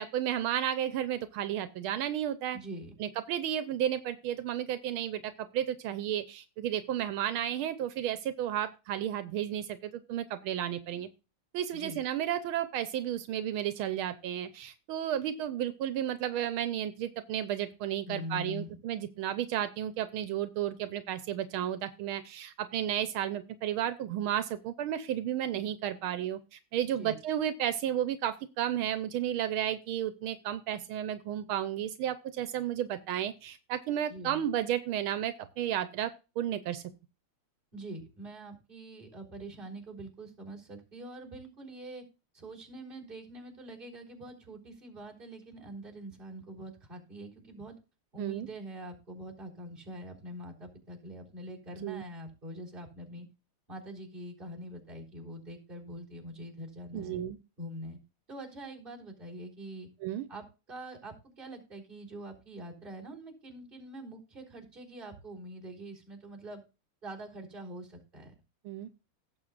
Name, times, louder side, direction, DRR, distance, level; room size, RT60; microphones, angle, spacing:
voice 1, 0.0-2.6 3.0-11.1 11.5-36.8 48.2-48.5 51.8-52.0 56.9-57.4 60.0-60.3 68.6-68.9, right 11 dB, 85° right, 11 dB, 1.6 m, -33 dB
voice 2, 2.5-2.9 11.7-12.0 18.1-18.8 27.0-27.1 34.1-34.4 37.7-42.0 42.3-47.8 48.1-53.3 53.7-57.2 57.6-58.0 58.3-59.9 60.3-66.6 67.0-68.3, right 1 dB, 25° right, -1 dB, 4.1 m, -44 dB
17.5 x 7.5 x 2.4 m, 0.30 s
omnidirectional pair, 2.3 m